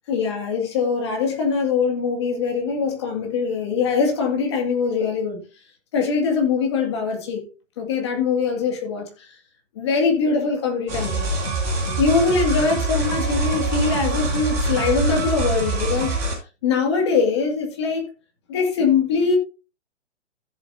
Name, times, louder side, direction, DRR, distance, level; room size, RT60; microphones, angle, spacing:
voice 1, 0.1-5.4 5.9-7.4 7.8-9.4 9.7-11.4 12.0-16.2 16.6-18.1 18.5-19.4, left 5 dB, 20° left, 2.1 m, -22 dB
sound 1, 10.9-16.3, right 2 dB, 10° right, 4.1 m, -24 dB
15.5 x 7.0 x 2.7 m
hypercardioid pair, 175°, 37 cm